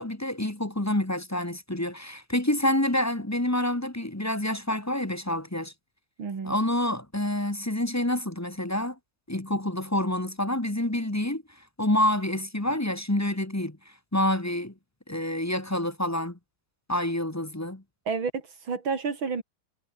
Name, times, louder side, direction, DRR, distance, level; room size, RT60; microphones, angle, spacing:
voice 1, 0.0-5.7 6.4-9.0 9.3-14.7 15.1-16.4 16.9-17.8, left 1 dB, 10° left, 1.1 m, -28 dB
voice 2, 6.2-6.6 18.1-19.4, right 5 dB, 85° right, 3.8 m, -30 dB
omnidirectional pair, 2.1 m